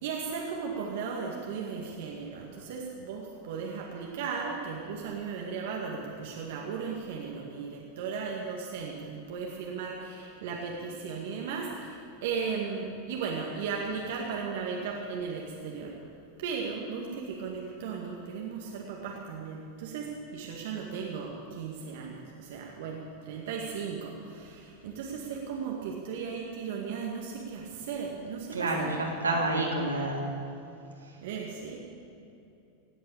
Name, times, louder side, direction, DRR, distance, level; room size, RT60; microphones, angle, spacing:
voice 1, 0.0-15.9 16.4-29.0 29.3-29.4 31.2-31.8, right 5 dB, 65° right, -1 dB, 2.0 m, -36 dB
voice 2, 28.5-30.2, right 2 dB, 90° right, -2 dB, 3.1 m, -28 dB
17.5 x 8.7 x 8.6 m, 2.8 s
hypercardioid pair, 95°, 0 cm